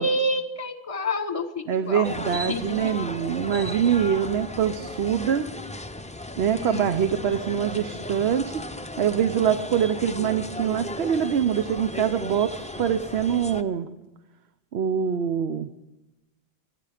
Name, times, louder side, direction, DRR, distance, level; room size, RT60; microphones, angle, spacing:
voice 1, 0.0-3.2 6.5-6.9, left 1 dB, 35° left, 9 dB, 1.2 m, -29 dB
voice 2, 1.7-5.5 6.4-8.7 9.0-13.9 14.7-15.7, right 8 dB, 80° right, 10 dB, 1.0 m, -24 dB
sound 1, 2.0-13.6, left 1 dB, 10° left, 0.4 m, -36 dB
25.5 x 10.5 x 5.0 m, 0.99 s
omnidirectional pair, 1.1 m